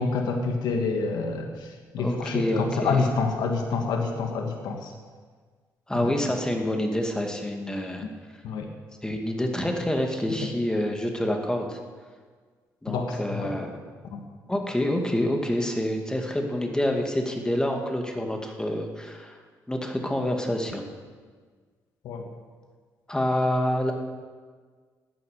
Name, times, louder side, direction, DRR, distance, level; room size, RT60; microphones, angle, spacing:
voice 1, 0.0-4.9 6.0-6.1 8.4-8.7 12.9-13.5 14.1-14.2 22.0-22.2, left 4 dB, 80° left, 3 dB, 1.6 m, -27 dB
voice 2, 2.0-3.1 5.9-8.0 9.0-11.8 12.8-13.7 14.5-19.4 19.7-20.8 23.1-23.9, left 1 dB, 10° left, 3 dB, 2.1 m, -27 dB
14.0 x 9.5 x 6.8 m, 1.5 s
cardioid pair, 85°, 7 cm